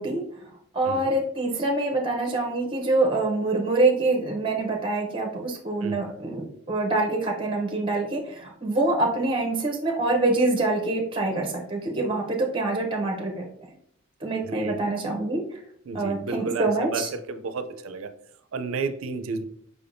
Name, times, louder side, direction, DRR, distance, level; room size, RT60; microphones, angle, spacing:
voice 1, 0.0-13.5 14.2-15.6 15.9-17.1, right 2 dB, 25° right, 2 dB, 0.6 m, -25 dB
voice 2, 14.4-14.9 15.9-18.1 18.5-19.4, right 4 dB, 70° right, 10 dB, 0.4 m, -32 dB
4.8 x 3.4 x 2.5 m, 0.68 s
head